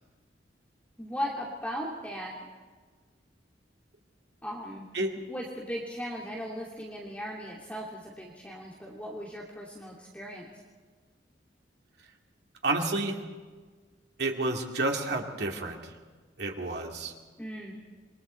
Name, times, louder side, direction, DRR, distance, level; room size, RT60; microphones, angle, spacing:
voice 1, 1.0-2.3 4.4-4.9 5.3-10.5 17.4-17.8, equal, 10° left, -4 dB, 2.6 m, -37 dB
voice 2, 12.6-13.2 14.2-15.9 16.4-17.1, right 2 dB, 65° right, 1 dB, 2.5 m, -30 dB
27.5 x 23.0 x 4.5 m, 1.4 s
head